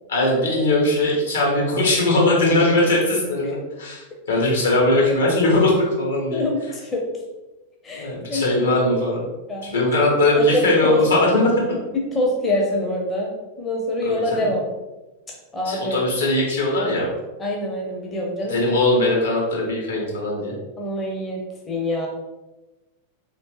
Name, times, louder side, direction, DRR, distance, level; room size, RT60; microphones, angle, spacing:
voice 1, 0.1-6.4 8.0-9.3 9.6-11.6 14.0-14.5 15.6-17.1 18.5-20.5, left 1 dB, 70° left, -3 dB, 1.1 m, -20 dB
voice 2, 6.3-7.0 7.8-8.7 9.5-9.7 10.3-11.0 11.9-13.3 13.6-14.7 15.5-16.0 17.4-18.6 20.8-21.4 21.7-22.1, left 1 dB, 20° left, -1 dB, 0.6 m, -25 dB
3.1 x 2.8 x 3.0 m, 1.1 s
figure-of-eight pair, 90°, 0 cm